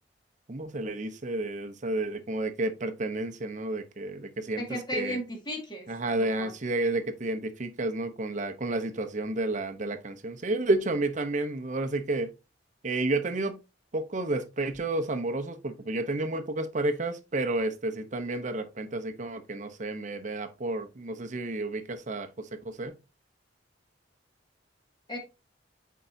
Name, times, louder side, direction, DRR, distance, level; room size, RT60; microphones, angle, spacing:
voice 1, 0.5-5.2 5.9-12.3 12.8-13.6 13.9-22.9, right 2 dB, 40° right, 0.8 m, -31 dB
voice 2, 4.6-5.9 6.2-6.5 25.1-25.2, left 1 dB, 25° left, 1.9 m, -34 dB
8.2 x 4.6 x 2.7 m
head